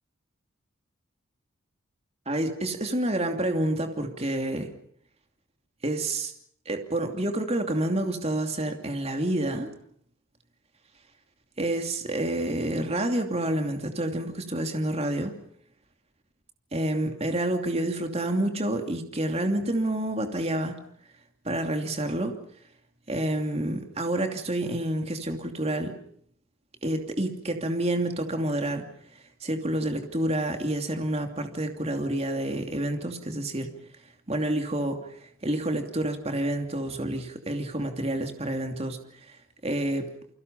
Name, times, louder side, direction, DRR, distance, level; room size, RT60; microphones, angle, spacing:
voice 1, 2.3-4.7 5.8-6.3 6.7-9.7 11.6-15.3 16.7-20.8 21.4-22.4 23.1-25.9 26.8-28.8 29.4-33.7 34.3-39.0 39.3-39.4 39.6-40.1, right 1 dB, 30° right, 5 dB, 2.7 m, -28 dB
29.5 x 24.5 x 5.5 m, 0.65 s
head